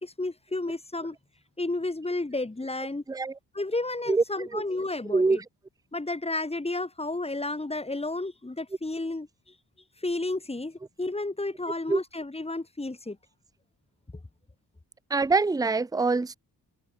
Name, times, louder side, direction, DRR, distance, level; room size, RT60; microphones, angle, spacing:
voice 1, 0.0-1.2 1.6-3.0 3.5-5.4 5.9-9.3 10.0-13.2, left 2 dB, 15° left, 2.0 m, -32 dB
voice 2, 15.1-16.3, right 3 dB, 10° right, 0.6 m, -24 dB
cardioid pair, 75°, 40 cm